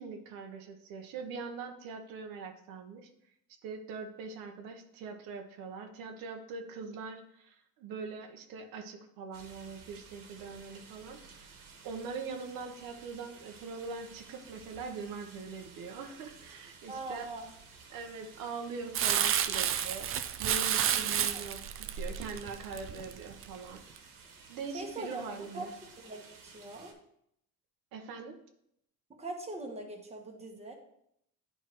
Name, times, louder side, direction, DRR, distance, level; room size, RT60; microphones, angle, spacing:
voice 1, 0.0-3.1 3.6-11.5 11.8-17.2 17.9-21.6 22.0-23.8 24.5-25.7 27.9-28.4, right 4 dB, 90° right, 4 dB, 1.0 m, -42 dB
sound 1, 9.3-26.9, right 4 dB, 75° right, 1.5 m, -55 dB
voice 2, 16.9-17.5 19.5-19.6 21.3-21.4 24.7-25.2 25.5-25.7 26.0-26.9 29.1-30.7, right 2 dB, 20° right, 2 dB, 1.2 m, -41 dB
Crumpling crinkling, 18.9-23.5 24.0-24.1, right 9 dB, 40° right, 0.4 m, -30 dB
10.5 x 4.5 x 3.0 m, 0.75 s
cardioid pair, 130°, 34 cm